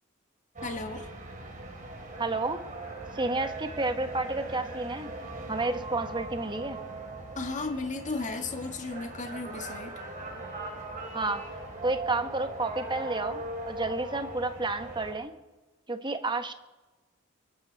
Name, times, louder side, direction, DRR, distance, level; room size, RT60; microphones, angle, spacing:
sound 1, 0.5-15.1, right 2 dB, 40° right, 3.1 m, -40 dB
voice 1, 0.6-1.1 7.4-9.9, left 3 dB, 40° left, 5 dB, 1.7 m, -34 dB
voice 2, 2.2-2.6 3.1-5.1 5.5-6.8 11.1-11.4 11.8-15.3 15.9-16.5, right 2 dB, 20° right, 9 dB, 1.1 m, -31 dB
23.5 x 12.5 x 4.0 m, 1.2 s
head